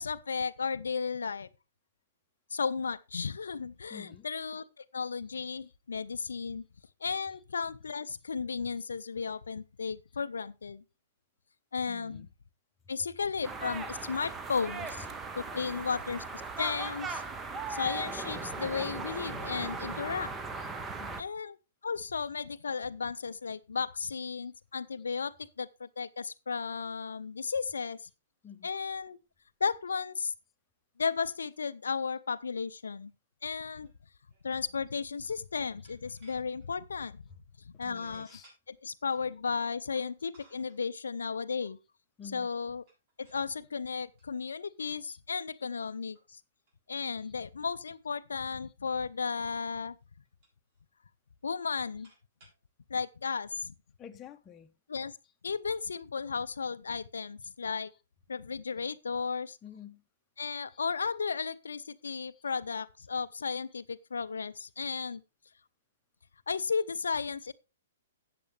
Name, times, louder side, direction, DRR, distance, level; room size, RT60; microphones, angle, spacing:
voice 1, 0.0-1.5 2.5-6.6 7.0-10.8 11.7-12.3 12.9-15.1 15.4-17.2 17.7-20.3 21.2-21.5 21.8-28.1 28.6-29.2 29.6-30.3 31.0-33.1 33.4-33.9 34.4-37.2 37.8-38.3 38.7-41.8 42.3-42.8 43.2-46.4 46.9-50.0 51.4-52.1 52.9-53.7 54.9-55.2 55.4-57.9 58.3-59.6 60.4-65.2 66.5-67.5, left 5 dB, 70° left, 0.5 m, -34 dB
voice 2, 3.9-4.3 5.6-5.7 7.3-7.4 11.9-12.3 15.5-15.9 19.8-19.9 21.0-21.3 24.4-24.5 28.4-28.7 33.7-33.8 37.3-37.4 37.7-38.5 42.2-42.5 45.1-45.2 45.5-45.6 47.2-47.3 54.0-54.7 59.6-60.0 60.7-60.8 62.3-62.4 65.0-65.2, left 8 dB, 20° left, 0.9 m, -51 dB
sound 1, 13.4-21.2, right 3 dB, 15° right, 1.0 m, -38 dB
sound 2, 33.8-34.0 34.3-34.4 35.8-36.7 37.2-37.4 38.1-38.6 39.4-39.5 40.3-40.9 42.8-43.5 44.2-44.5 44.9-45.0 45.7-45.8 46.1-46.3 46.7-46.8 47.0-47.1 47.4-47.5 47.9-48.9 49.5-49.7 50.0-50.8 51.4-52.6, right 1 dB, 45° right, 7.1 m, -63 dB
13.0 x 8.5 x 3.2 m
figure-of-eight pair, 115°, 0 cm